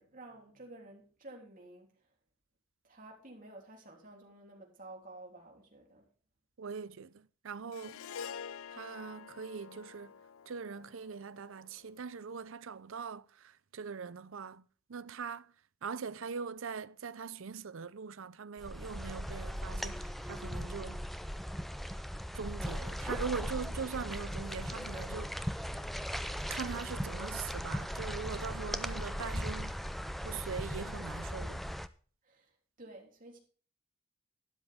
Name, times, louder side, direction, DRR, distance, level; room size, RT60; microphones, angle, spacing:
voice 1, 0.0-1.9 2.8-6.1 31.2-31.5 32.2-32.5 32.8-33.4, right 2 dB, 40° right, 3.3 m, -52 dB
voice 2, 6.6-8.0 8.7-10.1 10.5-14.6 14.9-15.5 15.8-21.0 22.3-25.6 26.5-29.8 30.2-31.6, right 5 dB, 70° right, 0.6 m, -41 dB
Harp, 7.7-12.2, left 7 dB, 75° left, 0.5 m, -48 dB
sound 1, 18.6-31.9, equal, ahead, 0.4 m, -38 dB
12.5 x 10.5 x 3.6 m
head